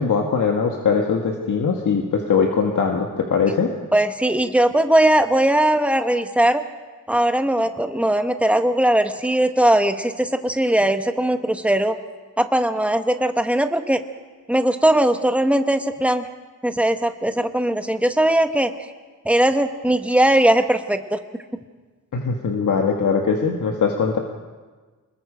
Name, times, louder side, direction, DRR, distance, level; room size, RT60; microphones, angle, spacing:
voice 1, 0.0-3.7 22.1-24.2, left 5 dB, 65° left, 1 dB, 1.7 m, -21 dB
voice 2, 3.9-6.6 7.1-12.0 12.4-14.0 14.5-16.3 16.6-18.9 19.2-21.4, right 1 dB, 5° right, 7 dB, 1.0 m, -19 dB
26.5 x 21.0 x 5.1 m, 1.4 s
wide cardioid pair, 145°, 33 cm